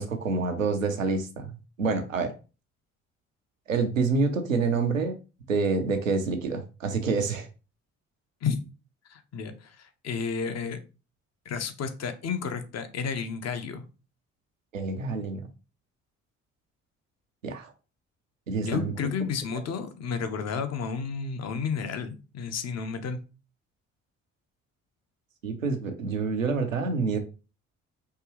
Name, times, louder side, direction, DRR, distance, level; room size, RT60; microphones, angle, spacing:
voice 1, 0.0-2.3 3.7-5.2 5.5-7.5 14.7-15.5 17.4-17.7 18.5-18.9 25.4-27.2, right 4 dB, 85° right, 5 dB, 0.7 m, -27 dB
voice 2, 9.1-10.8 11.4-13.9 18.6-23.2, left 6 dB, 40° left, 8 dB, 0.9 m, -32 dB
5.7 x 2.9 x 3.0 m, 0.32 s
figure-of-eight pair, 45°, 38 cm